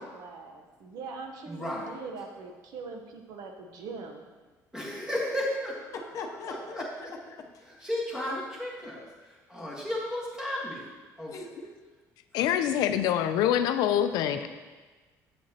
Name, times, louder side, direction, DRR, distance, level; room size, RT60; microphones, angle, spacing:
voice 1, 0.0-4.2, right 4 dB, 70° right, 4 dB, 0.9 m, -42 dB
voice 2, 1.5-2.0 4.7-5.9 6.5-6.8 7.8-9.0 9.5-10.9 11.2-11.3 12.4-12.5 14.4-14.5, left 1 dB, 10° right, -4 dB, 1.5 m, -33 dB
voice 3, 5.9-7.9 11.3-11.8, left 4 dB, 55° left, 3 dB, 0.7 m, -41 dB
voice 4, 12.3-14.5, left 10 dB, 85° left, 9 dB, 0.4 m, -25 dB
7.9 x 7.7 x 2.9 m, 1.3 s
cardioid pair, 155°, 7 cm